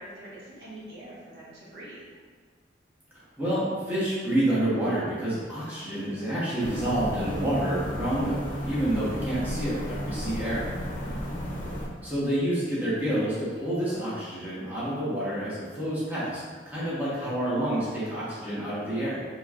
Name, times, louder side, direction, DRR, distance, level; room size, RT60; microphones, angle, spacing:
voice 1, 0.0-2.0 11.0-11.2, right 1 dB, 65° right, -9 dB, 1.4 m, -44 dB
voice 2, 3.4-10.7 12.0-19.2, right 1 dB, 10° right, -10 dB, 1.0 m, -28 dB
sound 1, 6.6-11.9, equal, 40° left, 0.7 m, -33 dB
4.3 x 3.1 x 2.4 m, 1.5 s
head